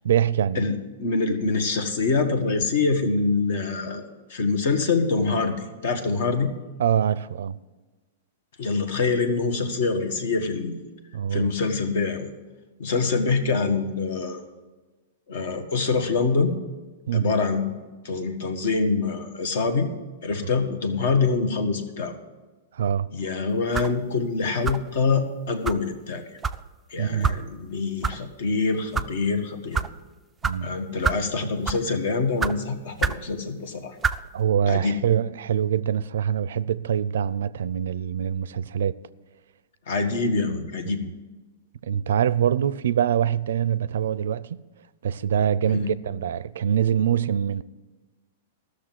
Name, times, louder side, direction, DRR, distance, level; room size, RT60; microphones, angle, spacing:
voice 1, 0.0-0.7 6.8-7.6 11.1-11.5 17.1-17.3 20.4-20.5 22.7-23.1 27.0-27.4 30.4-30.7 34.3-38.9 41.0-41.1 41.8-44.6 45.0-47.6, right 9 dB, 85° right, 0.4 m, -24 dB
voice 2, 0.5-6.5 8.6-10.8 11.3-12.3 12.8-14.4 15.3-16.6 17.1-17.8 18.0-19.9 20.2-22.1 23.1-26.2 26.9-29.8 30.6-34.0 34.7-35.0 39.9-41.0 45.7-45.9, left 4 dB, 60° left, 1.6 m, -25 dB
sound 1, 23.7-24.0 24.6-24.9 25.6-25.8 26.4-26.6 27.2-27.4 28.0-28.2 28.8-29.1 29.7-29.9 30.4-30.6 31.0-31.3 31.6-31.9 32.4-32.5 33.0-33.2 34.0-34.2, right 5 dB, 10° right, 0.3 m, -26 dB
14.0 x 6.6 x 7.5 m
supercardioid pair, 160°, 0 cm